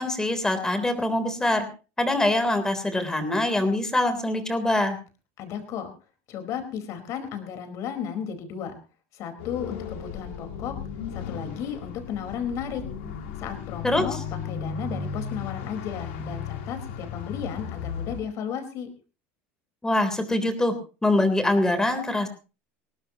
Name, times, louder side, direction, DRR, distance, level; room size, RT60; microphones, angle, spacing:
voice 1, 0.0-1.7 2.0-5.0 13.8-14.0 19.8-20.7 21.0-22.3, left 1 dB, 10° left, 8 dB, 3.5 m, -24 dB
voice 2, 5.4-5.9 6.3-8.7 9.1-10.8 11.1-12.8 13.4-18.9, left 8 dB, 55° left, 7 dB, 4.5 m, -34 dB
sound 1, 9.4-18.2, left 6 dB, 90° left, 3.3 m, -35 dB
21.0 x 18.0 x 3.0 m, 0.34 s
supercardioid pair, 120°, 6 cm